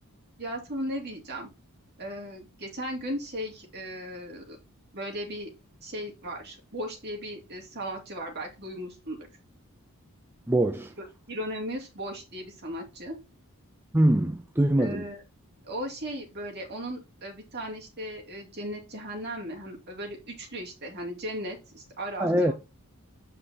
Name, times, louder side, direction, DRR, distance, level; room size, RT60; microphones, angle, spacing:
voice 1, 0.4-1.5 2.0-4.6 4.9-5.5 5.8-9.3 11.0-13.2 14.8-15.2 15.6-22.5, equal, 50° right, 2.5 m, -37 dB
voice 2, 10.5-10.9 13.9-15.1 22.2-22.5, right 1 dB, 10° right, 0.4 m, -23 dB
8.5 x 4.9 x 2.9 m
head